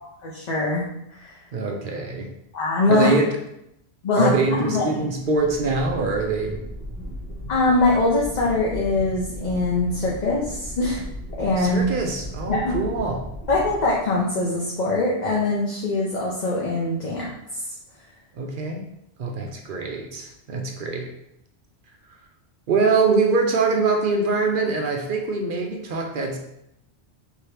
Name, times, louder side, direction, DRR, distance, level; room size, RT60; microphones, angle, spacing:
voice 1, 0.0-0.8 1.1-1.4 2.5-3.1 4.0-4.4 4.6-4.9 7.5-11.0 11.4-11.8 12.5-12.7 13.5-17.8, left 2 dB, 45° left, -4 dB, 0.7 m, -23 dB
voice 2, 1.5-2.3 2.9-3.3 4.2-6.6 11.6-13.3 18.3-18.8 19.2-21.1 22.7-26.4, right 4 dB, 60° right, 2 dB, 0.7 m, -23 dB
sound 1, 5.4-14.5, equal, 5° left, 1.0 m, -36 dB
4.8 x 2.8 x 3.2 m, 0.79 s
omnidirectional pair, 1.1 m